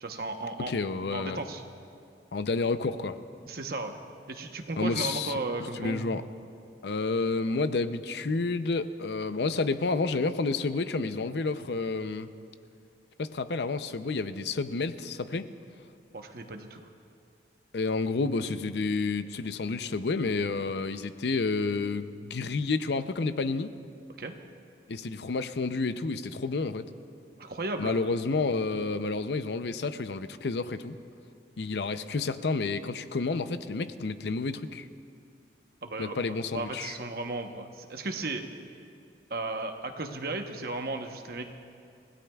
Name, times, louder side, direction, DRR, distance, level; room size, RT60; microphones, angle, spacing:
voice 1, 0.0-0.7 1.1-1.6 3.5-3.9 4.3-6.1 16.1-16.8 24.2-24.3 27.4-28.0 35.8-36.2 36.5-38.4 39.3-41.4, right 2 dB, 60° right, 5 dB, 1.0 m, -35 dB
voice 2, 0.6-1.4 2.3-3.2 4.8-5.4 5.8-6.2 6.8-12.3 13.2-15.5 17.7-23.7 24.9-26.8 27.8-31.0 31.6-34.9 36.0-36.9, left 3 dB, 70° left, 11 dB, 0.6 m, -30 dB
29.0 x 16.5 x 2.4 m, 2.4 s
head